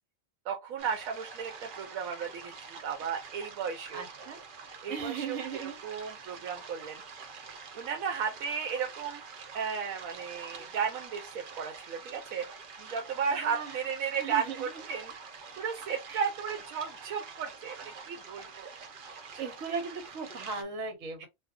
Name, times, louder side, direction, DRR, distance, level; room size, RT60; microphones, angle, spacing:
voice 1, 0.4-4.0 4.8-7.0 7.8-9.2 9.5-12.5 12.8-15.1 15.6-18.7 19.3-19.8 21.2-21.3, right 6 dB, 85° right, 1.0 m, -35 dB
sound 1, 0.8-20.6, right 5 dB, 50° right, 0.7 m, -46 dB
voice 2, 3.9-4.4 4.9-6.2 13.4-13.7 14.2-14.6 16.1-16.2 19.4-21.3, right 5 dB, 70° right, 1.3 m, -37 dB
2.6 x 2.4 x 3.5 m
omnidirectional pair, 1.4 m